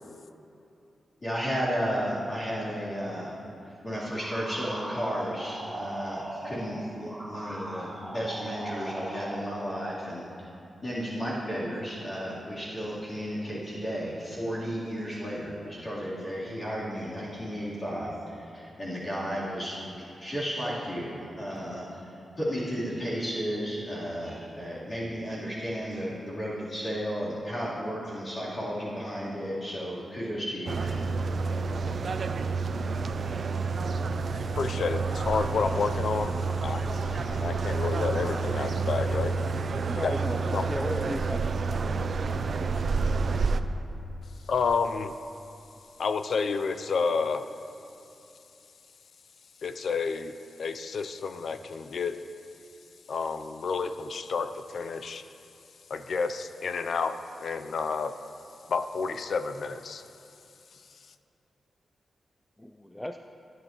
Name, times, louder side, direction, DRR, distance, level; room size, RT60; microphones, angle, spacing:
voice 1, 1.2-3.3 3.8-10.2 10.8-22.1 22.4-31.1, equal, 35° left, -10 dB, 3.4 m, -33 dB
sound 1, 4.2-9.6, right 1 dB, 15° right, 2.7 m, -39 dB
sound 2, 30.7-43.6, right 4 dB, 55° right, 0.4 m, -29 dB
voice 2, 34.5-36.3 36.6-36.9 37.3-39.3 39.9-40.7 44.5-45.1 46.0-47.5 49.6-52.2 53.1-55.2 55.9-58.2 58.7-60.0, left 5 dB, 65° left, 10 dB, 0.5 m, -30 dB
sound 3, 36.7-39.7, left 2 dB, 50° left, 1.0 m, -47 dB
voice 3, 39.9-41.7 62.6-63.2, left 1 dB, 10° left, 5 dB, 0.4 m, -36 dB
19.5 x 11.0 x 3.0 m, 2.8 s
wide cardioid pair, 105°, 0 cm